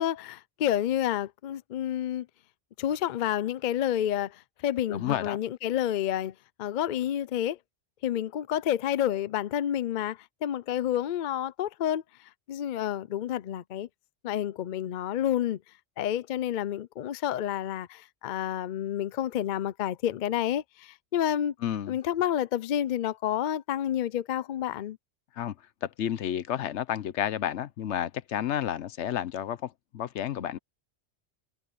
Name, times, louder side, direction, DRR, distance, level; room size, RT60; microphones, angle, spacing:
voice 1, 0.0-2.3 2.8-7.6 8.0-13.9 14.2-15.6 16.0-21.5 21.9-25.0, left 11 dB, 55° left, 0.5 m, -29 dB
voice 2, 4.9-5.4 21.6-21.9 25.4-25.5 25.8-30.6, left 10 dB, 75° left, 1.0 m, -31 dB
omnidirectional pair, 1.2 m